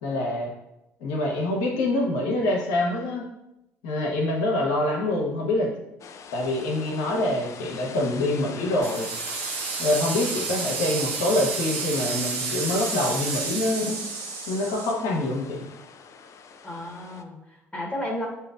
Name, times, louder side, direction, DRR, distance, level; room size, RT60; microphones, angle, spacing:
voice 1, 0.0-0.5 1.0-3.3 3.8-5.7 6.3-9.1 9.8-14.0 14.5-15.7, left 1 dB, 75° left, 0 dB, 1.0 m, -25 dB
sound 1, 6.0-17.2, left 6 dB, 45° left, 0.4 m, -44 dB
sound 2, 8.8-14.9, right 4 dB, 80° right, 0.8 m, -31 dB
voice 2, 16.6-18.3, left 1 dB, 15° left, -1 dB, 1.3 m, -33 dB
7.4 x 2.8 x 2.5 m, 0.90 s
hypercardioid pair, 60°, 7 cm